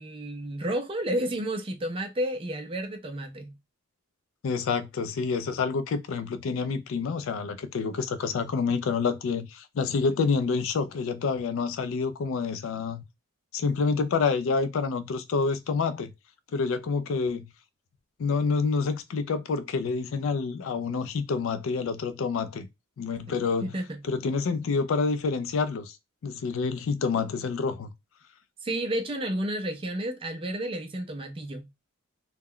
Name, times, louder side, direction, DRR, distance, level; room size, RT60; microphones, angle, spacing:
voice 1, 0.0-3.5 23.3-24.0 28.6-31.7, right 1 dB, 25° right, 0.4 m, -31 dB
voice 2, 4.4-13.0 13.5-16.1 16.5-17.5 18.2-22.7 23.0-23.7 24.0-26.0 26.2-27.9, left 4 dB, 65° left, 0.3 m, -28 dB
2.2 x 2.0 x 3.6 m
head